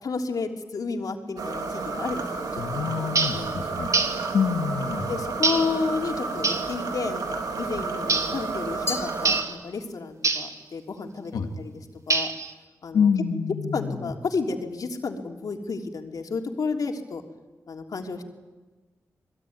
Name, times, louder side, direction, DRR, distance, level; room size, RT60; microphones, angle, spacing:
voice 1, 0.0-2.8 3.3-3.6 5.1-11.7 12.1-12.3 12.8-13.1 13.7-17.2 17.7-18.2, left 4 dB, 70° left, 3 dB, 3.3 m, -31 dB
sound 1, 1.4-9.4, right 3 dB, 85° right, 3.2 m, -31 dB
voice 2, 2.6-3.9 4.3-5.1 11.3-11.5 12.9-14.1, left 6 dB, 90° left, 6 dB, 1.9 m, -26 dB
sound 2, 3.1-3.4 3.9-4.2 5.4-5.7 6.4-6.7 8.1-8.4 9.2-9.5 10.2-10.5 12.1-12.5, right 4 dB, 55° right, 3.4 m, -24 dB
Glass, 8.9-10.1, left 3 dB, 40° left, 3.0 m, -35 dB
27.5 x 21.5 x 9.6 m, 1.3 s
cardioid pair, 45°, 6 cm